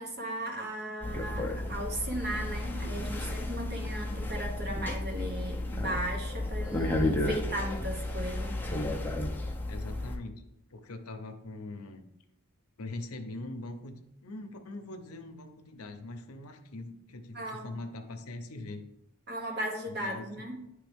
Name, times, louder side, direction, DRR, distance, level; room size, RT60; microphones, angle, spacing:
voice 1, 0.0-8.6 17.3-17.7 19.3-20.6, right 1 dB, 50° right, 1 dB, 1.3 m, -36 dB
sound 1, 1.0-10.2, left 1 dB, 10° left, 0.6 m, -33 dB
voice 2, 9.7-10.3 10.7-12.0 12.8-14.0 14.2-18.9 19.4-19.5 19.9-20.3, left 2 dB, 75° left, 7 dB, 0.7 m, -42 dB
9.7 x 3.3 x 3.5 m, 0.86 s
head